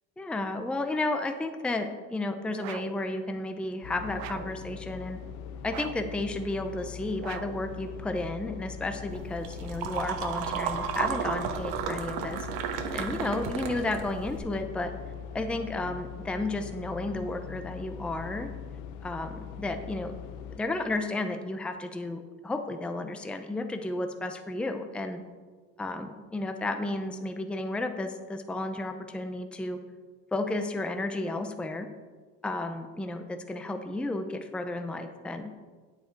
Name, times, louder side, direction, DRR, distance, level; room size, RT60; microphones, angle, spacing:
voice 1, 0.2-5.2 5.6-14.9 15.3-18.5 19.0-20.1 20.5-25.2 25.8-29.8 30.3-31.9 32.4-35.5, left 2 dB, 5° left, 7 dB, 0.5 m, -33 dB
sound 1, 2.6-3.1 4.2-4.6 5.7-6.2 7.2-7.7, right 13 dB, 65° right, 0.5 m, -41 dB
sound 2, 3.8-20.6, left 8 dB, 70° left, 0.6 m, -42 dB
sound 3, 9.1-14.4, right 7 dB, 80° right, 1.2 m, -33 dB
9.1 x 8.1 x 4.6 m, 1.5 s
cardioid pair, 140°, 32 cm